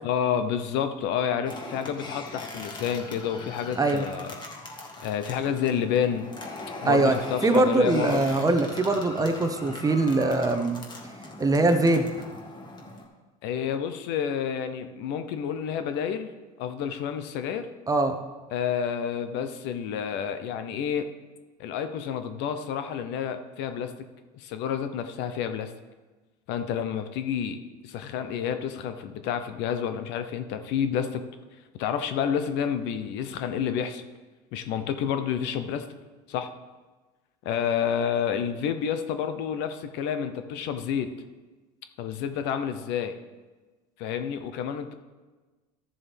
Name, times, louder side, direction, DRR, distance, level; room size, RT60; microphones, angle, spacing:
voice 1, 0.0-4.3 5.0-6.3 6.8-8.2 13.4-16.3 16.6-17.7 18.5-21.1 21.6-23.9 24.3-25.7 26.5-31.2 31.8-34.0 34.5-35.9 36.3-36.5 37.4-41.1 42.0-43.2 44.0-44.9, left 8 dB, 60° left, 9 dB, 0.8 m, -29 dB
sound 1, 1.4-13.0, left 2 dB, 20° left, 1.8 m, -40 dB
voice 2, 6.8-10.8 11.4-12.1 17.9-18.2, right 2 dB, 15° right, 7 dB, 0.9 m, -22 dB
14.0 x 7.0 x 3.4 m, 1.2 s
hypercardioid pair, 90°, 21 cm